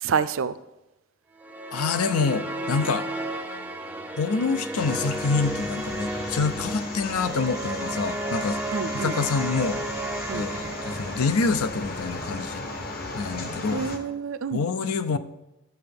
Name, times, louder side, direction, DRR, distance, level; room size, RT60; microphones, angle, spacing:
voice 1, 0.0-0.5 8.7-9.2 10.3-10.5 13.7-14.6, right 6 dB, 65° right, 13 dB, 0.4 m, -28 dB
sound 1, 1.4-11.8, right 2 dB, 10° right, 0.5 m, -33 dB
voice 2, 1.7-3.1 4.2-8.6 8.9-9.8 10.3-12.6 13.1-13.8 14.5-15.2, left 4 dB, 90° left, 12 dB, 0.6 m, -26 dB
sound 2, 4.8-14.0, left 2 dB, 45° left, 1.0 m, -35 dB
sound 3, 7.0-13.4 13.6-13.7, right 1 dB, 60° left, 2.6 m, -44 dB
13.0 x 6.6 x 3.5 m, 0.98 s
head